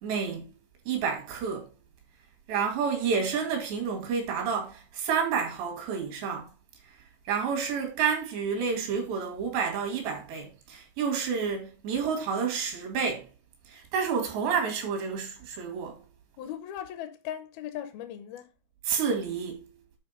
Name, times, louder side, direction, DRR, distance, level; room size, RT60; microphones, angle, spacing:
voice 1, 0.0-0.5 0.9-1.7 2.5-6.5 6.8-6.9 7.3-13.3 13.7-16.0 18.8-19.7, right 6 dB, 90° right, 4.4 m, -29 dB
voice 2, 16.4-18.5, left 10 dB, 75° left, 2.4 m, -38 dB
10.0 x 4.2 x 5.4 m
omnidirectional pair, 4.8 m